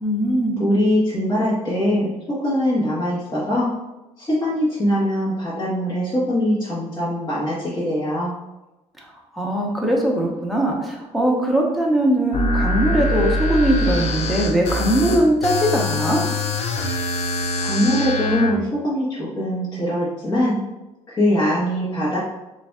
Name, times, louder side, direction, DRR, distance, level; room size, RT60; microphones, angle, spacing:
voice 1, 0.0-0.6 9.3-16.2, right 1 dB, ahead, -1 dB, 0.8 m, -20 dB
voice 2, 0.6-3.7 4.2-8.3 17.6-20.6 21.1-22.2, equal, 30° left, -9 dB, 1.3 m, -22 dB
sound 1, 12.3-18.5, left 1 dB, 55° left, 0.6 m, -23 dB
6.8 x 2.6 x 2.3 m, 1.0 s
cardioid pair, 125°, 13 cm